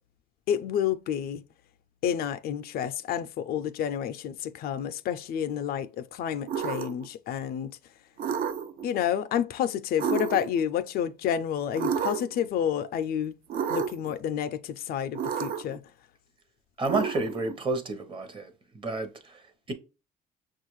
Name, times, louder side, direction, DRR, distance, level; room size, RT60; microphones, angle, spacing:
voice 1, 0.5-1.4 2.0-7.7 8.8-13.4 13.7-15.8, left 9 dB, 65° left, 0.4 m, -29 dB
sound 1, 6.5-7.1 8.2-8.9 10.0-10.7 11.8-12.4 13.5-14.1 15.1-15.8 16.8-17.6, right 7 dB, 60° right, 0.5 m, -30 dB
voice 2, 16.8-19.7, right 3 dB, 30° right, 0.8 m, -31 dB
6.0 x 2.4 x 3.0 m
cardioid pair, 110°, 17 cm